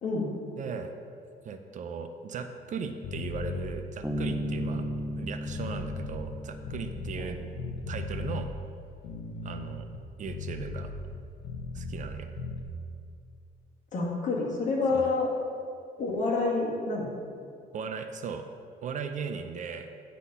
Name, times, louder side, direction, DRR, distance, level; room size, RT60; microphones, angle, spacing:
voice 1, 0.0-0.3 7.2-7.4 13.9-15.3 16.0-17.1, left 3 dB, 45° left, -3 dB, 2.0 m, -28 dB
voice 2, 0.6-0.9 1.4-4.8 5.2-7.4 7.9-8.5 9.4-9.9 10.2-10.9 11.7-12.3 14.9-15.1 17.7-18.5 18.8-19.9, right 6 dB, 50° right, 7 dB, 0.5 m, -37 dB
sound 1, 3.0-3.6 4.1-7.3 7.6-8.4 8.9-12.1 12.4-12.6, left 4 dB, 70° left, 1.0 m, -37 dB
Bass guitar, 4.0-7.5, equal, ahead, 0.6 m, -35 dB
9.8 x 4.2 x 5.5 m, 2.4 s
cardioid pair, 110°, 17 cm